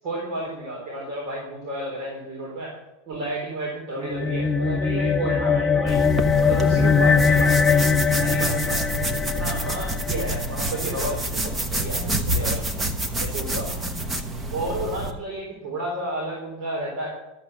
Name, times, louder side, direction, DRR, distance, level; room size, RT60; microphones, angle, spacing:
voice 1, 0.0-2.7 3.1-6.0 6.4-7.8 8.1-9.1 9.3-12.8 13.2-13.7 14.5-17.1, right 1 dB, 45° right, -3 dB, 3.9 m, -31 dB
sound 1, 4.0-10.7, left 5 dB, 15° left, 0.4 m, -21 dB
sound 2, 5.9-15.1, right 1 dB, 15° right, 1.1 m, -28 dB
13.0 x 8.1 x 6.7 m, 0.95 s
supercardioid pair, 150°, 0 cm